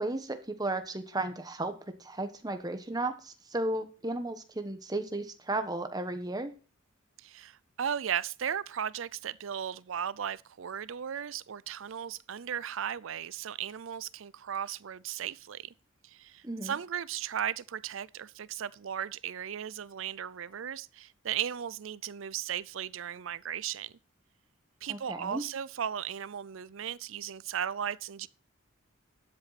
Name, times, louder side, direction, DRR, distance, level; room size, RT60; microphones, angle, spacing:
voice 1, 0.0-1.7 2.0-6.5 16.4-16.8 24.9-25.4, right 2 dB, 20° right, 1.2 m, -34 dB
voice 2, 7.2-15.7 16.0-23.9 24.8-28.3, right 9 dB, 70° right, 0.5 m, -36 dB
12.5 x 7.9 x 4.1 m
head